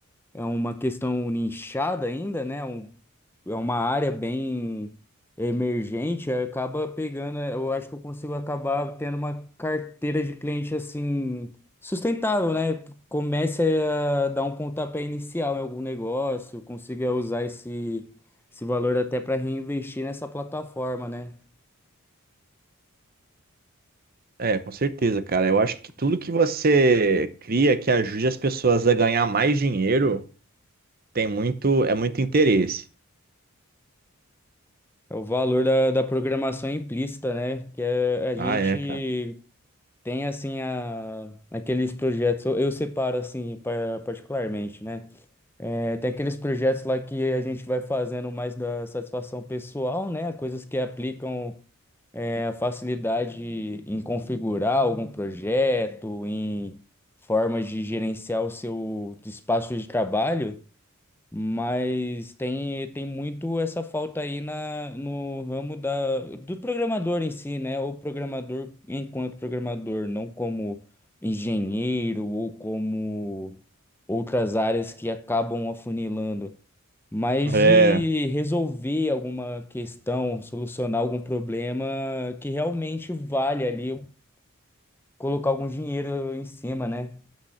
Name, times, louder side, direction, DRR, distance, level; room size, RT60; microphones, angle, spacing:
voice 1, 0.3-2.9 3.5-4.9 5.4-11.5 11.8-18.1 18.6-21.3 35.1-39.4 40.0-45.1 45.6-51.6 52.1-56.8 57.3-60.6 61.3-70.8 71.2-73.6 74.1-76.6 77.1-84.1 85.2-87.2, left 1 dB, 10° left, 0.6 m, -28 dB
voice 2, 24.4-30.2 31.1-32.8 38.4-39.0 77.5-78.0, right 3 dB, 40° right, 0.7 m, -21 dB
8.7 x 6.0 x 6.3 m
head